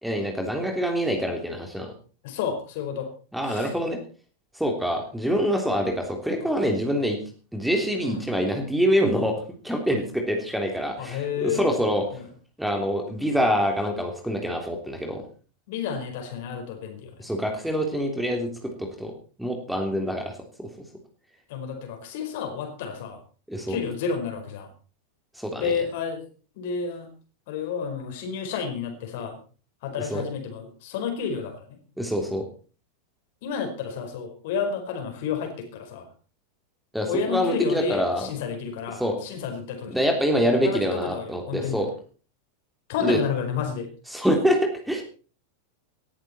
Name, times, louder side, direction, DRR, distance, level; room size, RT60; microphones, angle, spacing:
voice 1, 0.0-1.9 3.3-4.0 4.5-7.2 7.5-9.4 9.6-12.0 12.6-15.2 17.2-18.5 18.8-19.1 19.4-20.7 23.5-23.8 25.4-25.7 30.1-30.2 32.0-32.4 36.9-38.3 39.0-39.2 39.9-41.9 43.0-43.2 44.1-45.0, equal, ahead, 3 dB, 3.3 m, -25 dB
voice 2, 2.2-3.1 3.4-3.7 6.4-6.5 8.0-8.2 11.0-11.8 12.1-12.3 15.7-17.3 21.5-23.2 23.7-24.7 25.6-26.2 26.5-27.1 27.5-29.4 29.8-31.8 33.4-36.1 37.0-40.0 40.6-41.8 42.9-43.9, left 6 dB, 50° left, 5 dB, 5.0 m, -30 dB
18.0 x 13.5 x 4.4 m, 0.38 s
figure-of-eight pair, 90°, 0 cm